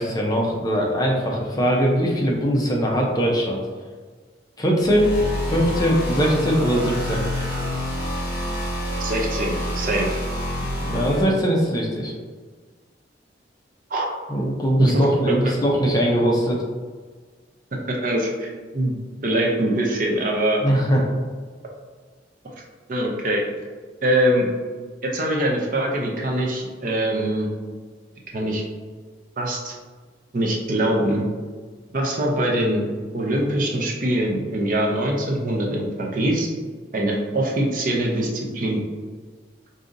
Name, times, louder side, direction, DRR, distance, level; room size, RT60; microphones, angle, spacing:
voice 1, 0.0-3.6 4.6-5.1 5.5-7.2 10.8-12.1 14.3-16.6 20.6-21.0, equal, 20° left, -2 dB, 0.5 m, -21 dB
sound 1, 4.8-11.2, left 1 dB, 55° left, 1.3 m, -27 dB
voice 2, 9.0-10.2 13.9-14.1 14.8-15.0 17.9-19.0 19.2-20.6 22.9-23.4 24.0-24.5 25.0-27.5 28.3-28.6 29.4-29.7 30.3-31.2 31.9-32.8 33.1-36.5 36.9-38.8, right 1 dB, 45° right, -1 dB, 0.6 m, -23 dB
4.9 x 2.7 x 2.5 m, 1.5 s
head